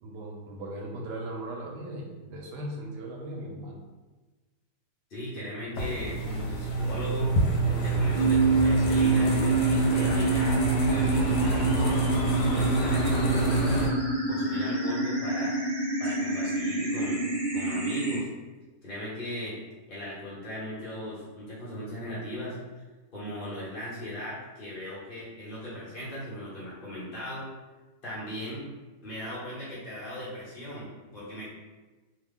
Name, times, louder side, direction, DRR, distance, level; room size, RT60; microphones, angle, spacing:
voice 1, 0.0-3.8 16.0-16.1 16.4-16.5, right 1 dB, 85° right, -1 dB, 1.3 m, -38 dB
voice 2, 5.1-7.4 7.7-12.1 12.4-13.8 14.3-15.6 16.0-17.2 17.5-18.3 18.8-19.6 19.9-22.6 23.1-27.5 28.0-28.7 29.0-31.5, left 1 dB, 40° left, -9 dB, 0.9 m, -37 dB
sound 1, 5.8-13.9, right 2 dB, 80° left, 1.2 m, -27 dB
sound 2, 8.2-18.2, right 2 dB, 55° right, 0.5 m, -27 dB
3.0 x 2.3 x 3.5 m, 1.2 s
omnidirectional pair, 1.8 m